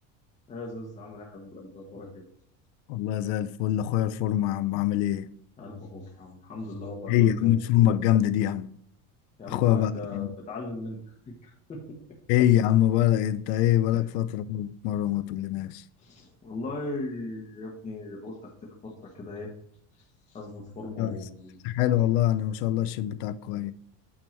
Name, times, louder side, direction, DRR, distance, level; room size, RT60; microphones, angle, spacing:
voice 1, 0.5-2.2 5.6-7.5 9.4-11.0 11.4-11.8 13.9-14.1 16.0-19.5 20.3-21.6, left 2 dB, 20° left, 1.3 m, -38 dB
voice 2, 2.9-5.3 7.1-8.7 9.5-10.3 12.3-15.8 21.0-21.2 21.6-23.7, left 12 dB, 75° left, 0.6 m, -24 dB
8.8 x 3.6 x 4.4 m
cardioid pair, 150°, 36 cm